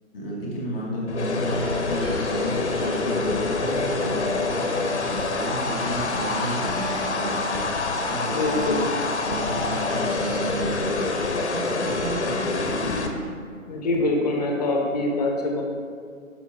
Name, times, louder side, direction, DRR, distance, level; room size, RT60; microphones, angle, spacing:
voice 1, 0.1-7.7 8.1-8.9 9.2-12.7, equal, 5° left, -21 dB, 0.5 m, -31 dB
sound 1, 1.1-13.1, left 3 dB, 55° left, 1.0 m, -26 dB
sound 2, 1.4-10.5, right 1 dB, 30° right, 1.4 m, -43 dB
voice 2, 8.3-8.8 13.7-15.6, left 2 dB, 30° left, 0 dB, 1.0 m, -24 dB
12.5 x 5.1 x 2.7 m, 2.2 s
figure-of-eight pair, 140°, 41 cm